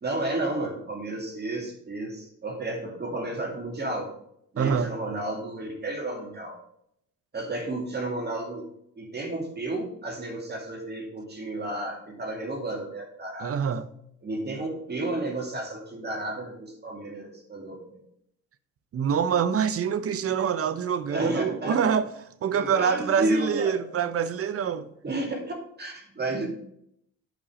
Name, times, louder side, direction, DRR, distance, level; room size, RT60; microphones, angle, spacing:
voice 1, 0.0-4.1 4.5-6.6 7.3-8.6 9.0-13.5 14.2-18.0 21.1-21.7 22.5-23.8 25.0-25.4 25.8-26.5, right 2 dB, 35° right, 2.5 m, -32 dB
voice 2, 4.6-4.9 13.4-13.9 18.9-22.1 22.4-24.9, right 7 dB, 50° right, 0.8 m, -25 dB
9.3 x 5.6 x 5.0 m
cardioid pair, 90°, 30 cm